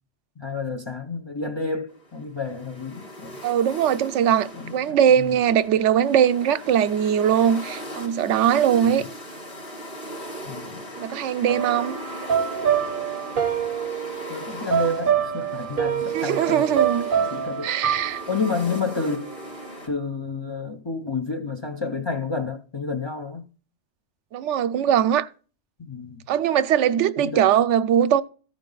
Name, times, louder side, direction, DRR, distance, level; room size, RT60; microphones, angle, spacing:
voice 1, 0.4-3.4 4.5-5.4 8.9-9.1 10.4-10.9 14.3-16.6 17.2-17.7 18.3-19.3 19.9-23.4 25.8-26.2 27.2-27.5, left 4 dB, 30° left, 0.5 m, -30 dB
sound 1, 1.9-19.9, equal, 55° left, 3.5 m, -39 dB
voice 2, 3.4-9.0 11.0-12.0 16.1-17.1 17.6-18.2 24.3-25.3 26.3-28.2, right 9 dB, 85° right, 0.9 m, -21 dB
sound 2, 11.5-19.7, right 8 dB, 55° right, 0.8 m, -26 dB
14.0 x 5.0 x 3.8 m
omnidirectional pair, 1.2 m